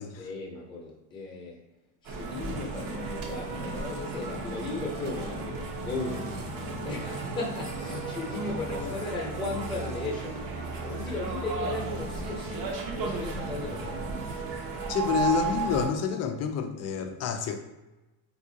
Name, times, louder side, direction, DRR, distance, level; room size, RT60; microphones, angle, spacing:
voice 1, 0.2-1.6 2.0-6.3 6.8-10.4 10.8-14.0, left 3 dB, 10° left, -2 dB, 0.8 m, -36 dB
sound 1, 2.0-15.9, right 4 dB, 50° right, 0.8 m, -34 dB
voice 2, 14.9-17.6, left 7 dB, 40° left, 7 dB, 0.4 m, -29 dB
3.5 x 2.7 x 2.7 m, 1.0 s
supercardioid pair, 110°, 44 cm